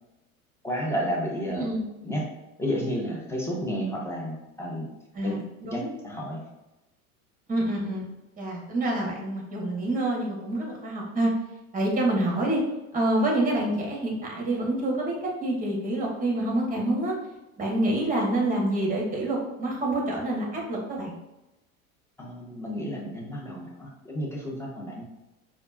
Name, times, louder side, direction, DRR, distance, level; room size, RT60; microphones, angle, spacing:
voice 1, 0.6-1.7 2.0-2.3 2.6-4.9 5.2-5.4 5.7-6.4 22.2-25.0, equal, 5° left, -3 dB, 1.0 m, -31 dB
voice 2, 5.1-5.9 7.5-8.1 8.4-11.3 11.7-12.6 12.9-17.1 17.6-21.1, right 1 dB, 20° right, -2 dB, 1.3 m, -27 dB
4.4 x 2.5 x 2.6 m, 0.97 s
hypercardioid pair, 75°, 43 cm